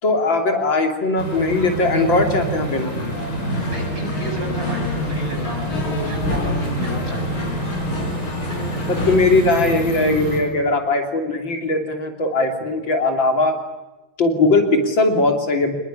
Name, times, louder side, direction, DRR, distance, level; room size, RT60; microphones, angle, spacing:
voice 1, 0.0-2.9 8.9-13.6 14.2-15.7, left 2 dB, 70° left, 5 dB, 3.8 m, -19 dB
sound 1, 1.2-10.4, equal, 35° left, 6.0 m, -27 dB
sound 2, 2.7-9.2, left 2 dB, 85° left, 5.9 m, -30 dB
voice 2, 3.7-7.5, right 1 dB, 40° right, 2 dB, 7.9 m, -32 dB
26.0 x 21.0 x 9.9 m, 1.1 s
omnidirectional pair, 2.2 m